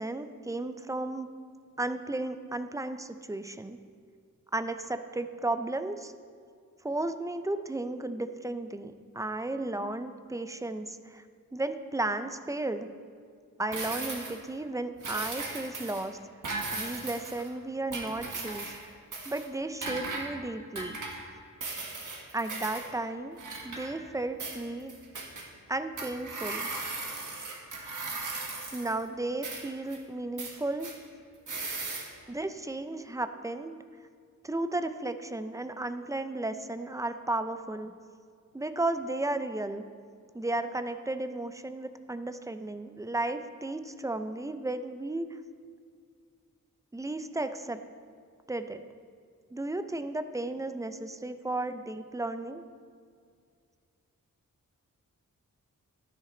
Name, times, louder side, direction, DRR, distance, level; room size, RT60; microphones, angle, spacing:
voice 1, 0.0-1.3 1.8-3.8 4.5-6.1 6.8-11.2 11.5-12.9 13.6-16.2 16.7-18.7 19.3-21.0 22.3-23.4 23.6-24.9 25.7-26.7 28.7-30.9 32.3-33.8 34.4-37.9 38.5-39.8 40.3-45.3 46.9-47.8 48.5-48.8 49.5-52.6, right 2 dB, 10° right, 9 dB, 0.4 m, -34 dB
sound 1, 13.7-14.4 15.0-16.0 16.4-17.5 17.9-18.8 19.1-19.5 19.8-20.3 20.8-21.2 21.6-22.9 23.4-24.1 24.4-25.4 26.0-29.0 29.4-30.0 30.4-30.9 31.5-32.1, right 3 dB, 65° right, 1.5 m, -37 dB
12.5 x 9.9 x 3.8 m, 2.1 s
wide cardioid pair, 130°, 33 cm